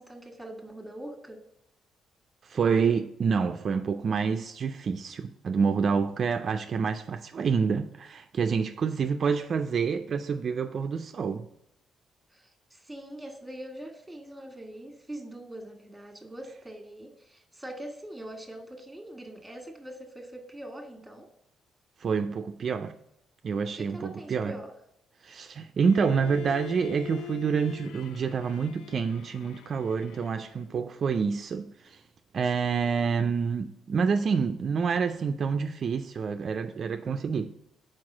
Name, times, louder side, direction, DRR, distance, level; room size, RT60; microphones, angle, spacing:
voice 1, 0.0-1.4 12.3-21.3 23.7-24.7, right 1 dB, 5° right, 1.4 m, -43 dB
voice 2, 2.4-11.5 22.0-22.9 23.4-24.5 25.2-32.0 32.3-37.5, right 5 dB, 50° right, 0.3 m, -28 dB
Bowed string instrument, 25.8-30.7, left 13 dB, 85° left, 0.3 m, -44 dB
4.7 x 4.4 x 6.0 m
cardioid pair, 90°, 0 cm